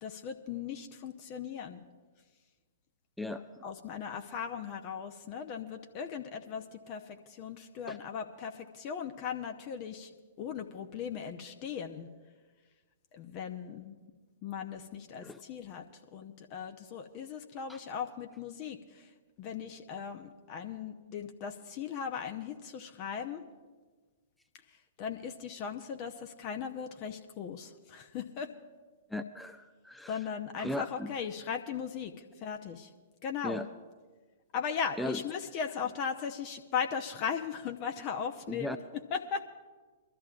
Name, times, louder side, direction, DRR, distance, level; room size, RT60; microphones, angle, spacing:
voice 1, 0.0-1.8 3.6-10.1 10.4-12.1 13.1-13.9 14.4-15.9 16.1-19.1 19.4-23.4 25.0-28.5 30.1-32.9 33.2-33.6 34.5-38.8 39.1-39.4, left 7 dB, 35° left, 6 dB, 0.8 m, -38 dB
voice 2, 29.1-30.2 30.6-31.1 33.4-33.7 35.0-35.2 38.5-38.8, left 1 dB, ahead, 7 dB, 0.4 m, -37 dB
24.5 x 13.0 x 2.5 m, 1.4 s
figure-of-eight pair, 110°, 0 cm